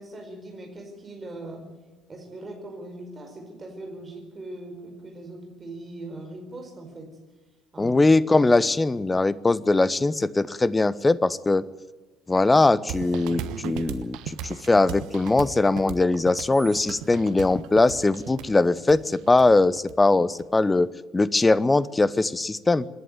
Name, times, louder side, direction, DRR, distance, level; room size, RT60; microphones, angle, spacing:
voice 1, 0.0-1.7 2.1-7.2 7.7-8.0, right 2 dB, 30° right, 2 dB, 4.9 m, -40 dB
voice 2, 7.8-11.6 12.3-22.8, left 2 dB, 15° left, 19 dB, 0.8 m, -21 dB
sound 1, 12.9-20.4, right 8 dB, 60° right, 1.2 m, -36 dB
26.0 x 11.0 x 9.3 m, 1.2 s
figure-of-eight pair, 55°, 0 cm